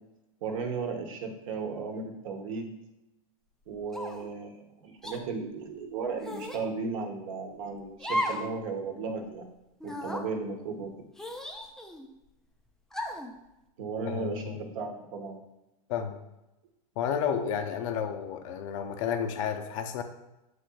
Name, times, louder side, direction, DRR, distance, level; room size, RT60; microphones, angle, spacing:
voice 1, 0.4-2.7 3.7-9.5 9.8-10.9 13.8-15.4, right 4 dB, 65° right, 3 dB, 0.9 m, -35 dB
sound 1, 3.9-4.3 5.0-5.2 6.2-6.7 8.0-8.5 8.9-9.0 9.8-10.3 11.2-12.1 12.9-13.3, equal, 5° left, 0.3 m, -34 dB
voice 2, 14.1-14.6 15.9-16.2 17.0-20.0, left 8 dB, 60° left, 6 dB, 0.6 m, -31 dB
7.7 x 2.8 x 2.3 m, 0.93 s
hypercardioid pair, 120°, 18 cm